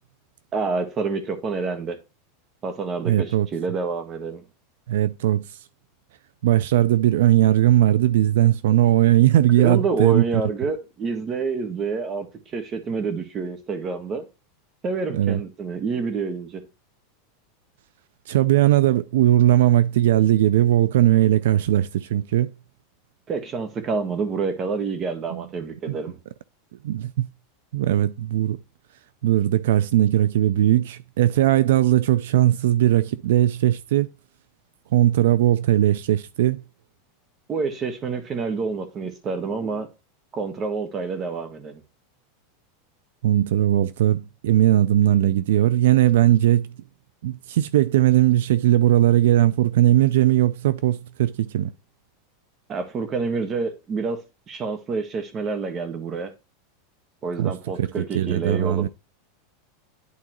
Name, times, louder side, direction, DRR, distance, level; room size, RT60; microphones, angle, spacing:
voice 1, 0.5-2.0 2.6-4.5 9.6-14.3 14.8-16.6 23.3-26.2 37.5-39.9 40.3-41.8 52.7-54.2 54.5-56.3 57.2-58.9, right 4 dB, 25° right, 1.4 m, -28 dB
voice 2, 3.0-3.5 4.9-5.5 6.4-10.2 15.1-15.4 18.3-22.5 25.3-25.4 25.9-26.0 26.8-27.3 27.7-28.6 29.2-34.1 34.9-36.6 43.2-46.7 47.2-51.7 57.4-57.5 57.8-57.9 58.1-58.9, right 13 dB, 80° right, 0.4 m, -19 dB
11.0 x 3.9 x 3.0 m
supercardioid pair, 145°, 0 cm